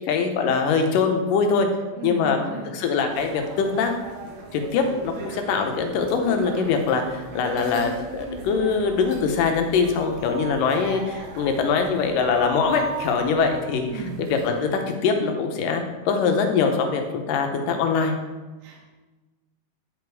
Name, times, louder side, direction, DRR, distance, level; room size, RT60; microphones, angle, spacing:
voice 1, 0.1-1.7 2.0-2.4 2.7-3.9 4.5-18.1, left 5 dB, 80° left, 5 dB, 2.4 m, -23 dB
voice 2, 1.9-2.7 13.9-14.2 18.6-18.8, right 4 dB, 40° right, -2 dB, 1.6 m, -34 dB
sound 1, 3.1-14.6, right 3 dB, 65° right, 2.2 m, -38 dB
10.5 x 5.1 x 4.7 m, 1.2 s
omnidirectional pair, 4.0 m